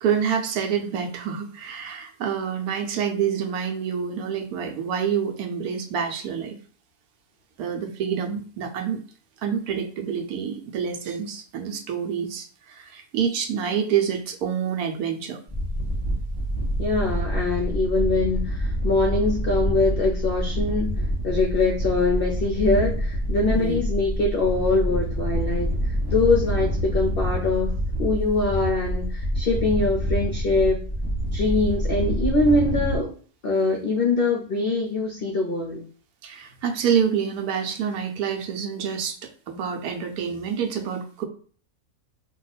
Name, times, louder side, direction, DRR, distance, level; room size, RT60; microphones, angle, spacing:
voice 1, 0.0-6.5 7.6-9.0 9.4-15.4 23.5-23.8 36.2-39.2 39.5-41.2, right 7 dB, 75° right, 4 dB, 1.1 m, -27 dB
sound 1, 15.5-33.0, equal, 10° left, 0.6 m, -26 dB
voice 2, 16.8-20.9 21.2-27.7 28.0-30.8 31.3-33.2 33.4-35.8, left 3 dB, 60° left, 0 dB, 0.6 m, -23 dB
2.8 x 2.3 x 4.0 m, 0.43 s
omnidirectional pair, 1.7 m